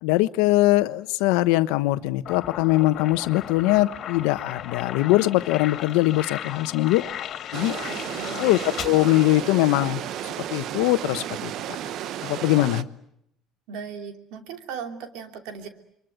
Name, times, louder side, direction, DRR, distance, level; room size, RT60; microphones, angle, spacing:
voice 1, 0.0-7.0 7.5-7.7 8.4-11.5 12.2-12.9, left 17 dB, 85° left, 13 dB, 1.0 m, -22 dB
sound 1, 2.2-10.0, left 10 dB, 55° left, 2.4 m, -36 dB
sound 2, 7.5-12.8, right 11 dB, 60° right, 1.0 m, -33 dB
voice 2, 7.8-8.6 13.7-15.7, right 6 dB, 80° right, 7 dB, 3.0 m, -37 dB
27.5 x 23.0 x 9.2 m, 0.78 s
supercardioid pair, 105°, 0 cm